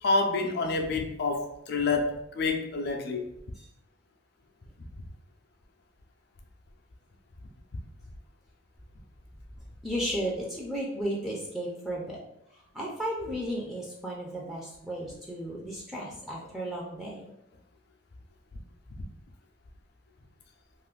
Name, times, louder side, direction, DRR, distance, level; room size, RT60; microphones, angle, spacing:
voice 1, 0.0-3.2, left 3 dB, 55° left, 0.5 m, -28 dB
voice 2, 9.8-12.2 12.5-17.3, equal, ahead, 0.5 m, -34 dB
2.5 x 2.5 x 3.6 m
head